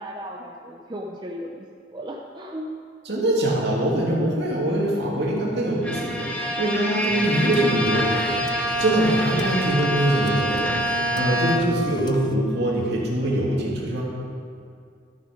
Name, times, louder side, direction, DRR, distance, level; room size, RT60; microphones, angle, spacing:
voice 1, 0.0-2.7, equal, 25° right, -1 dB, 0.6 m, -36 dB
voice 2, 3.1-14.0, right 1 dB, 60° right, -4 dB, 2.4 m, -23 dB
Bowed string instrument, 5.8-11.9, equal, 5° left, 0.9 m, -26 dB
sound 1, 7.1-12.4, left 2 dB, 20° left, 0.4 m, -38 dB
12.5 x 7.7 x 5.1 m, 2.3 s
head